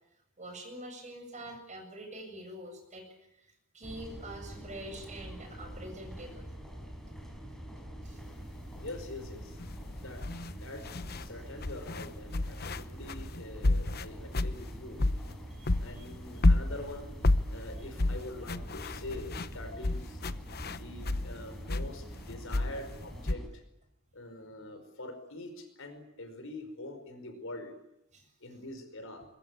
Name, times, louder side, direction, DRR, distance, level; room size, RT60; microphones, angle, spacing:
voice 1, 0.4-3.1 3.4-3.5 3.7-6.5 8.0-8.2 15.5-15.7 15.9-16.1 28.1-28.3, right 1 dB, 35° right, 4 dB, 7.4 m, -45 dB
sound 1, 3.8-23.5, equal, ahead, 5.0 m, -45 dB
sound 2, 8.7-9.0 9.6-11.3 11.6-15.4 15.7-21.3 21.7-23.3, left 2 dB, 45° left, 1.0 m, -30 dB
voice 2, 8.8-9.6 10.0-15.0 15.8-17.2 17.5-20.2 20.6-23.6 24.1-27.7 28.4-29.3, left 2 dB, 65° left, 8 dB, 5.1 m, -44 dB
22.5 x 22.0 x 9.8 m, 0.85 s
head